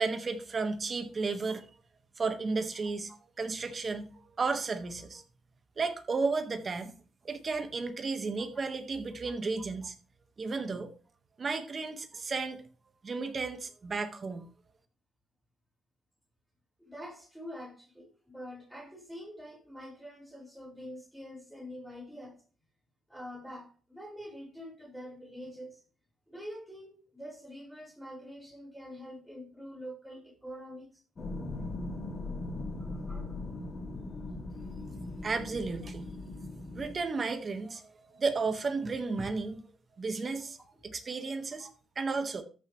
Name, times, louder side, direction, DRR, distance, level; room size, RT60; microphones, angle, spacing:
voice 1, 0.0-1.6 2.2-3.1 3.4-5.2 5.8-6.9 7.2-9.9 10.4-10.9 11.4-12.6 13.0-14.5 35.2-36.1 36.7-39.6 40.0-40.6 40.8-41.7 41.9-42.4, right 4 dB, 40° right, 1.4 m, -33 dB
voice 2, 16.8-22.4 23.1-25.8 26.3-31.0 32.8-33.4 34.1-34.3 36.8-36.9 41.6-41.7, equal, 5° right, 4.6 m, -46 dB
sound 1, 31.2-37.0, left 2 dB, 35° left, 2.4 m, -39 dB
13.5 x 6.1 x 3.1 m
cardioid pair, 90°, 0 cm